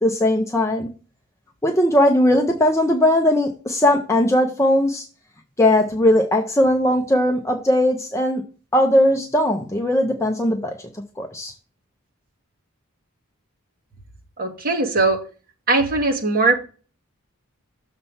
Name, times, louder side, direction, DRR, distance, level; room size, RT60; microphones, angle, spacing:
voice 1, 0.0-0.9 1.6-5.0 5.6-8.4 8.7-10.7 11.2-11.5, left 1 dB, 15° left, 0.6 m, -18 dB
voice 2, 14.4-15.2 15.7-16.6, right 3 dB, 45° right, 1.6 m, -20 dB
6.7 x 4.3 x 5.7 m
head